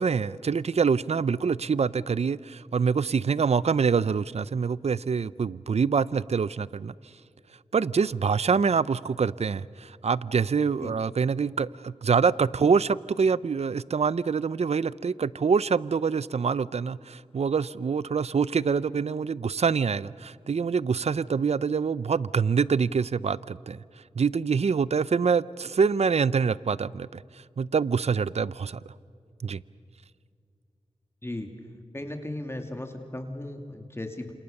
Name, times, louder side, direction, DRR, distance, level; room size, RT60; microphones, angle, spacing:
voice 1, 0.0-6.9 7.7-23.8 24.2-27.2 27.6-28.9 29.4-29.6, right 5 dB, 65° right, 0.6 m, -25 dB
voice 2, 31.9-34.3, left 1 dB, 20° left, 2.7 m, -36 dB
29.0 x 27.5 x 6.7 m
wide cardioid pair, 60°, 12 cm